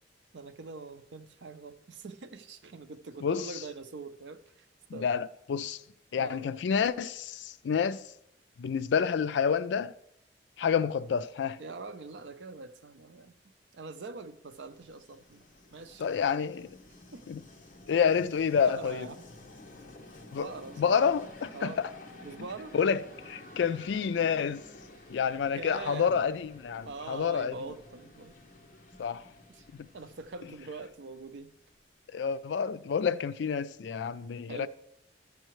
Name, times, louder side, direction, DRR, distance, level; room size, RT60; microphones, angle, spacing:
voice 1, 0.3-4.7 4.9-5.1 6.2-6.4 11.6-15.4 15.7-16.2 17.1-17.3 18.5-19.3 20.3-21.0 21.5-21.8 22.2-22.7 25.5-26.3 26.9-28.3 29.5-29.7 29.9-31.5 34.5-34.7, right 3 dB, 75° right, 0.6 m, -43 dB
voice 2, 3.2-3.6 4.9-5.8 6.1-8.1 8.6-9.9 10.6-11.6 16.0-16.7 17.3-17.4 17.9-19.1 20.3-20.5 20.8-21.9 22.7-24.6 25.1-27.6 29.0-29.2 29.7-29.9 32.1-34.7, left 6 dB, 70° left, 0.3 m, -29 dB
Train, 14.2-31.9, left 2 dB, 45° left, 0.9 m, -52 dB
13.5 x 6.6 x 3.1 m
head